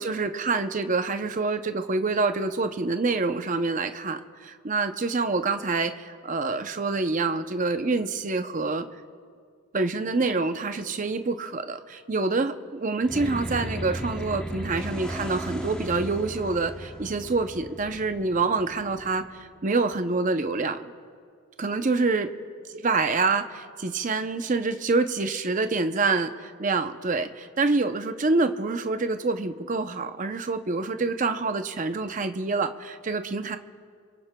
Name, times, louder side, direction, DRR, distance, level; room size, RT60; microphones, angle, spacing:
voice 1, 0.0-8.9 9.7-20.9 21.6-22.3 22.7-33.6, right 3 dB, 35° right, 8 dB, 0.6 m, -26 dB
sound 1, 13.0-19.6, equal, 5° left, 0.8 m, -36 dB
26.5 x 23.0 x 2.2 m, 2.1 s
head